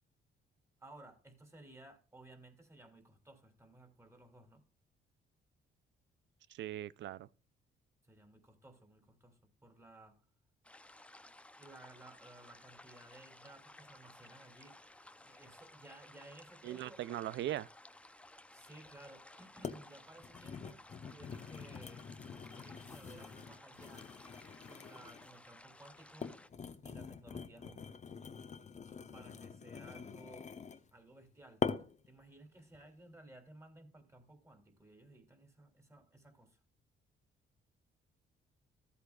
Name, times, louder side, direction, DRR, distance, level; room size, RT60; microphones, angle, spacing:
voice 1, 0.8-4.6 8.0-10.2 11.6-14.8 15.2-17.0 18.5-20.8 21.1-22.1 22.6-24.1 24.6-26.3 26.8-28.0 29.1-30.5 30.9-31.6 32.1-36.6, right 2 dB, 15° right, 3.0 m, -57 dB
voice 2, 6.5-7.3 16.6-17.7, right 13 dB, 70° right, 0.5 m, -39 dB
sound 1, 10.6-26.5, left 1 dB, 5° left, 0.6 m, -57 dB
sound 2, 18.8-18.9 19.6-19.8 20.2-25.4 26.0-30.9 31.6-32.1 32.6-32.8, left 5 dB, 35° left, 0.9 m, -44 dB
14.0 x 8.3 x 2.4 m
cardioid pair, 90°, 20 cm